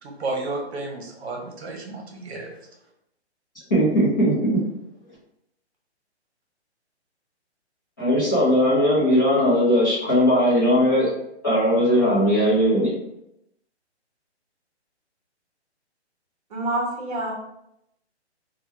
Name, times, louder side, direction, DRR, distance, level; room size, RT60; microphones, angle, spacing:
voice 1, 0.0-2.5, right 2 dB, 70° right, 1 dB, 0.8 m, -32 dB
voice 2, 3.7-4.6 8.0-11.1 11.4-12.9, equal, 20° left, -11 dB, 0.5 m, -19 dB
voice 3, 16.5-17.3, right 1 dB, 35° right, -3 dB, 1.0 m, -27 dB
2.9 x 2.2 x 3.3 m, 0.80 s
hypercardioid pair, 170°, 34 cm